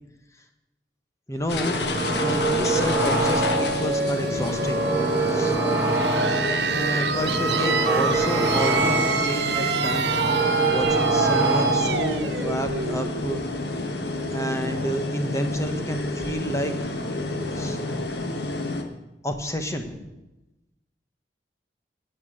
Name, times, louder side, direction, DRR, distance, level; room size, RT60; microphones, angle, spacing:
voice 1, 1.3-1.8 2.2-4.9 5.3-5.6 6.7-10.2 10.6-13.4 13.6-13.8 14.3-16.9 17.5-17.8 19.2-20.2, equal, 15° left, 6 dB, 1.3 m, -30 dB
sound 1, 1.5-18.8, left 2 dB, 75° left, 1.5 m, -29 dB
sound 2, 1.5-3.9 4.3-6.6 7.0-9.3 9.7-12.1, right 2 dB, 15° right, 2.1 m, -26 dB
sound 3, 2.7-14.2, right 4 dB, 85° right, 1.2 m, -27 dB
14.5 x 9.2 x 7.7 m, 1.0 s
head